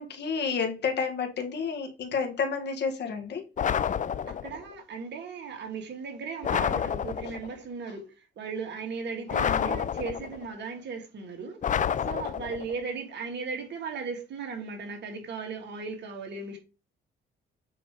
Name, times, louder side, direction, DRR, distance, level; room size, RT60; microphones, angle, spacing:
voice 1, 0.0-3.4 9.4-9.8, left 5 dB, 60° left, 1.8 m, -30 dB
sound 1, 3.6-4.6 6.4-7.5 9.3-10.5 11.6-12.7, left 8 dB, 40° left, 0.5 m, -29 dB
voice 2, 4.3-16.6, right 5 dB, 60° right, 2.8 m, -37 dB
7.7 x 3.4 x 4.9 m
cardioid pair, 90°, 20 cm